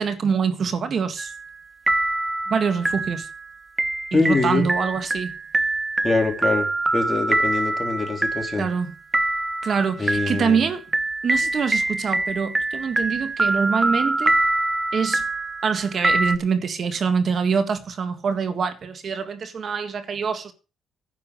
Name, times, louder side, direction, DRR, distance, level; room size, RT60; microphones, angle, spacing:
voice 1, 0.0-1.3 2.5-3.3 4.1-5.3 8.6-8.9 9.6-10.8 11.2-14.4 14.9-15.2 15.6-20.5, right 6 dB, 50° right, 1.7 m, -24 dB
sound 1, 1.2-1.6 1.9-16.4, right 2 dB, 20° right, 1.1 m, -25 dB
voice 2, 4.1-4.7 6.0-8.7 10.0-10.6, left 3 dB, 30° left, 3.5 m, -24 dB
10.5 x 7.3 x 7.8 m
cardioid pair, 90°, 0 cm